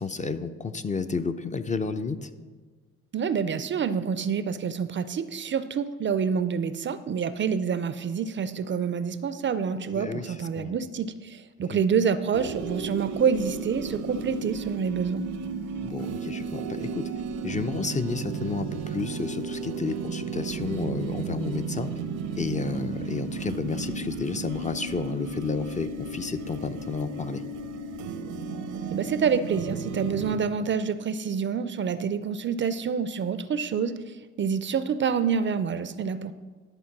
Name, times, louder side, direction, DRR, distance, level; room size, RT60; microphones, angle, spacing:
voice 1, 0.0-2.3 9.9-10.7 11.7-11.8 15.8-17.1 17.4-21.9 22.3-27.4, left 4 dB, 25° left, 9 dB, 0.5 m, -31 dB
voice 2, 3.1-15.3 28.9-36.3, right 6 dB, 40° right, 13 dB, 0.4 m, -27 dB
sound 1, 12.3-30.4, right 4 dB, 85° right, 0.8 m, -34 dB
11.0 x 4.4 x 5.9 m, 1.4 s
cardioid pair, 90°, 30 cm